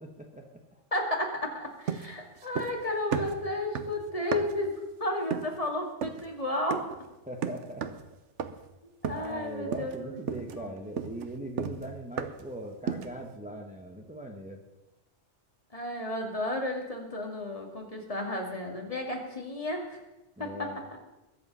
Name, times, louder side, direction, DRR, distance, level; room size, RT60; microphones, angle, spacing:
voice 1, 0.0-0.8 7.3-8.0 9.1-14.6 20.4-20.8, right 1 dB, 5° right, 2 dB, 1.1 m, -41 dB
voice 2, 0.9-4.7 5.0-6.8 9.1-10.7 15.7-20.0 20.4-20.7, left 1 dB, 30° left, 0 dB, 2.5 m, -33 dB
sound 1, 1.9-2.8 3.1-4.7 5.3-5.6 6.0-6.3 6.7-7.0 7.4-8.1 8.4-8.7 9.0-9.4 9.7-10.0 10.3-12.5 12.9-13.2, right 7 dB, 80° right, 1.2 m, -35 dB
22.0 x 8.1 x 5.6 m, 1.0 s
omnidirectional pair, 1.2 m